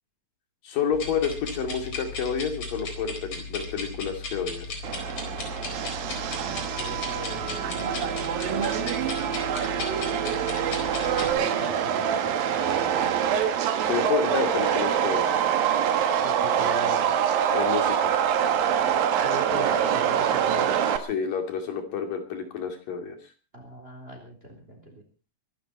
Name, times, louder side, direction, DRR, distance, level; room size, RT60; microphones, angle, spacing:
voice 1, 0.6-4.8 13.8-15.4 17.5-18.2 21.0-23.2, left 6 dB, 75° left, 5 dB, 4.4 m, -29 dB
sound 1, 0.9-11.3, left 3 dB, 45° left, 5.3 m, -36 dB
Subway metro underground, 4.8-21.0, right 9 dB, 85° right, 3.2 m, -25 dB
voice 2, 6.8-7.7 8.5-9.4 10.4-10.8 11.1-12.9 16.2-17.1 19.2-20.8 23.5-25.0, left 1 dB, 15° right, 3 dB, 3.9 m, -40 dB
24.0 x 12.0 x 4.5 m, 0.36 s
omnidirectional pair, 4.0 m